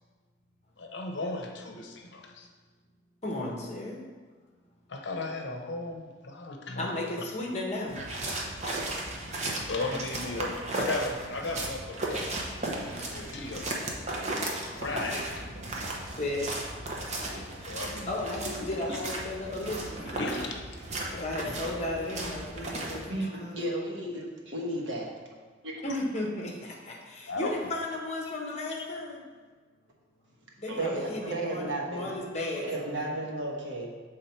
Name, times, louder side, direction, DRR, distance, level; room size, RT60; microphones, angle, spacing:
voice 1, 0.8-2.5 4.9-6.9 8.7-8.8 9.7-12.4 12.7-13.7 14.3-14.5 14.8-15.4 17.2-18.1 18.9-19.0 20.2-20.6 21.2-21.3 27.3-27.5 28.9-29.0, left 2 dB, 65° left, 2 dB, 0.7 m, -36 dB
voice 2, 3.2-4.0 6.8-8.0 16.1-16.5 18.1-20.2 21.1-23.6 25.8-29.2 30.6-33.0, left 2 dB, 35° left, -1 dB, 1.0 m, -34 dB
sound 1, 7.9-23.0, right 2 dB, 35° right, 0.8 m, -35 dB
voice 3, 23.1-25.1 25.6-25.8 30.7-32.1 32.6-33.9, right 1 dB, 75° right, -1 dB, 1.1 m, -33 dB
6.8 x 3.6 x 4.4 m, 1.4 s
head